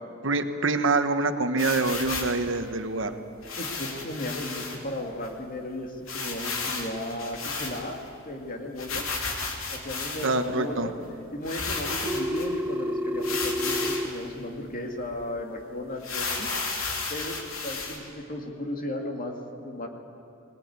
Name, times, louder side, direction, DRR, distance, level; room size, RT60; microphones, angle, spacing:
voice 1, 0.2-3.2 10.2-10.9, right 3 dB, 65° right, 8 dB, 1.2 m, -25 dB
sound 1, 1.6-2.4 3.4-4.8 5.2-5.3 5.5-5.6 6.1-8.1 8.8-10.5 11.1-11.2 11.4-12.5 13.2-14.1 14.6-14.7 15.1-15.2 16.0-18.0, left 4 dB, 85° left, 3.1 m, -33 dB
voice 2, 3.6-8.0 8.3-9.0 9.7-10.9 11.3-16.5 17.1-19.9, left 1 dB, 40° left, 3 dB, 2.3 m, -35 dB
Telephone, 12.1-14.1, equal, 10° right, 0.6 m, -29 dB
20.0 x 19.5 x 9.5 m, 2.6 s
head